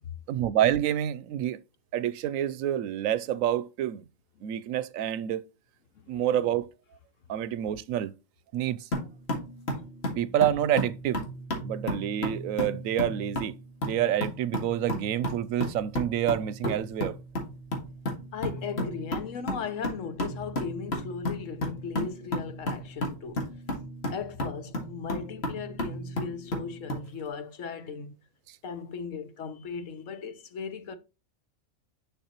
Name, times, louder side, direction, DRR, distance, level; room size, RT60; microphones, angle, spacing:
voice 1, 0.3-1.6 1.9-4.0 4.4-5.4 6.1-6.7 7.3-8.1 8.5-8.9 10.2-11.2 11.6-17.2, right 11 dB, 85° right, 1.0 m, -28 dB
sound 1, 8.9-27.1, equal, 50° left, 2.2 m, -34 dB
voice 2, 18.3-23.5 24.1-28.2 28.6-31.0, left 6 dB, 70° left, 1.2 m, -37 dB
6.7 x 6.0 x 2.9 m
omnidirectional pair, 1.4 m